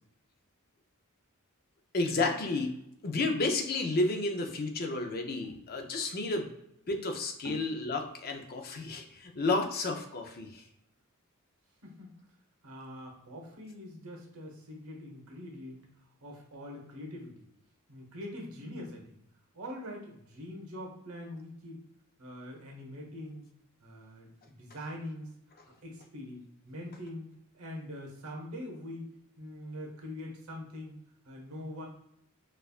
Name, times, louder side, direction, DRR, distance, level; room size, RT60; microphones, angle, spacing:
voice 1, 1.9-2.7 3.0-6.5 6.9-10.6, left 2 dB, 45° left, 4 dB, 0.5 m, -31 dB
voice 2, 11.8-12.2 12.6-17.4 17.9-19.2 19.5-21.8 22.2-23.5 23.8-25.3 25.8-27.3 27.5-29.1 29.4-30.9 31.2-31.9, left 1 dB, 75° right, 0 dB, 1.1 m, -43 dB
4.3 x 2.4 x 2.4 m, 0.78 s
head